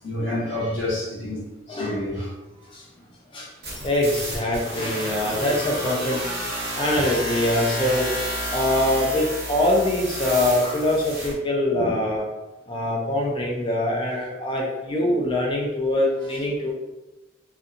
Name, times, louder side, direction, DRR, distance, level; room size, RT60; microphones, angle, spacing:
voice 1, 0.0-2.3 4.4-4.5 6.9-7.0 11.7-12.0, left 1 dB, 85° left, 0.8 m, -29 dB
voice 2, 1.7-2.0 2.7-2.9 3.3-3.5 3.8-6.2 6.7-8.1 8.5-12.2 12.7-16.7, left 1 dB, 25° left, 0.3 m, -23 dB
sound 1, 3.6-11.3, equal, 55° right, 0.9 m, -30 dB
2.6 x 2.3 x 2.4 m
head